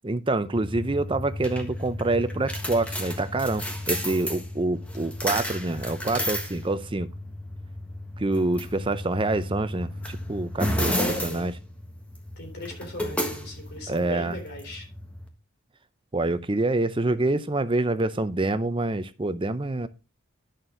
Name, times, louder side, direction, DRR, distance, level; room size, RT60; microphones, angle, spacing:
voice 1, 0.0-7.1 8.2-11.0 11.2-11.5 13.9-14.4 16.1-19.9, right 2 dB, 25° right, 0.6 m, -26 dB
sound 1, 0.6-15.3, equal, 5° left, 1.5 m, -33 dB
voice 2, 10.8-11.4 12.4-14.9, left 2 dB, 50° left, 3.6 m, -37 dB
11.0 x 6.6 x 3.8 m
head